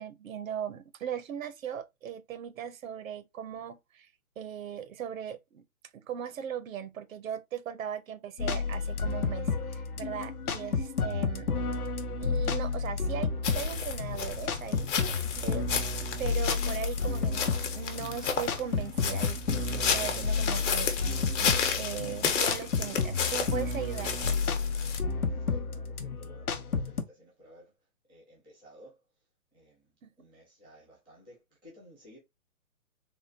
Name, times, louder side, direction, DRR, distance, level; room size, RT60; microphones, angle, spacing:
voice 1, 0.0-4.1 4.4-5.6 5.9-11.5 12.2-15.7 16.0-24.1 30.0-30.1, right 9 dB, 70° right, 0.6 m, -39 dB
sound 1, 8.4-27.0, left 4 dB, 85° left, 0.8 m, -31 dB
sound 2, 13.4-25.0, left 6 dB, 55° left, 0.9 m, -32 dB
voice 2, 26.0-27.6 28.1-28.9 29.5-29.7 30.2-31.3 31.6-32.2, equal, ahead, 0.4 m, -54 dB
3.6 x 2.1 x 2.6 m
hypercardioid pair, 140°, 43 cm